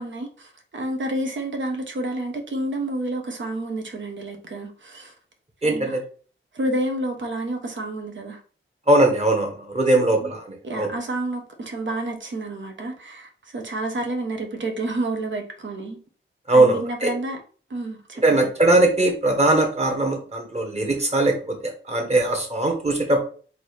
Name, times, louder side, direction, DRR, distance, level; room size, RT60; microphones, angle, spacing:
voice 1, 0.0-5.1 5.6-6.0 6.5-8.4 10.1-10.3 10.6-16.0 16.5-17.4 17.7-18.5, right 1 dB, 65° right, 1.1 m, -29 dB
voice 2, 5.6-6.0 8.9-10.9 16.5-16.8 17.0-17.1 18.2-23.2, right 2 dB, 30° right, 1.4 m, -20 dB
3.8 x 2.8 x 4.9 m
wide cardioid pair, 85°, 21 cm